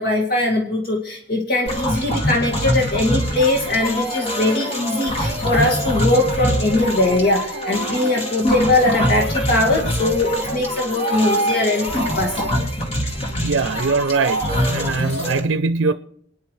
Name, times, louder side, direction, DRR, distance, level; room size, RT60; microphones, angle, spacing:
voice 1, 0.0-12.5, left 2 dB, 55° left, 2.0 m, -20 dB
sound 1, 1.7-15.4, equal, 35° left, 2.2 m, -24 dB
voice 2, 13.4-14.4 14.7-15.9, right 4 dB, 80° right, 0.5 m, -21 dB
28.0 x 10.0 x 3.2 m
head